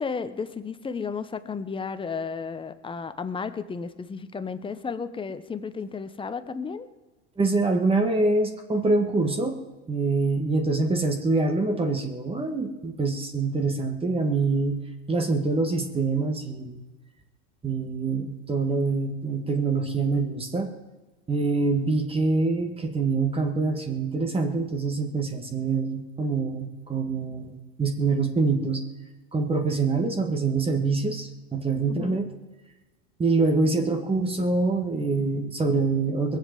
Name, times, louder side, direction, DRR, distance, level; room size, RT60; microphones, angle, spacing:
voice 1, 0.0-6.9 31.9-32.2, left 5 dB, 15° left, 11 dB, 1.0 m, -33 dB
voice 2, 7.4-9.6 9.9-14.8 15.1-16.8 17.6-20.7 21.3-28.8 29.3-32.3 33.2-36.4, right 3 dB, 20° right, 5 dB, 1.9 m, -25 dB
20.5 x 7.8 x 7.7 m, 1.2 s
supercardioid pair, 115°, 31 cm